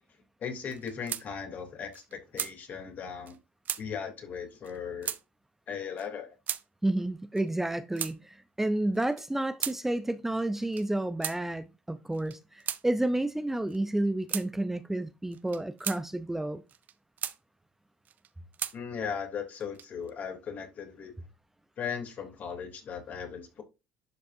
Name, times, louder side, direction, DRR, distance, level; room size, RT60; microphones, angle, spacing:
voice 1, 0.4-3.4 3.8-5.1 5.7-6.3 18.7-21.2 21.8-23.6, left 7 dB, 50° left, 3.0 m, -37 dB
sound 1, 0.7-1.3 1.6-1.7 1.9-2.5 3.3-3.4 3.6-3.8 4.6-4.8 5.0-5.2 6.0-6.1 6.5-6.6 7.4-8.2 8.9-9.8 10.6-10.9 11.2-11.4 12.1-12.8 13.7-13.8 14.3-14.5 15.3-16.0 16.7-17.4 18.0-18.8 19.5-20.1, right 9 dB, 50° right, 0.7 m, -36 dB
voice 2, 6.8-16.6, right 1 dB, 10° right, 0.7 m, -30 dB
11.5 x 5.2 x 2.7 m
hypercardioid pair, 65°, 4 cm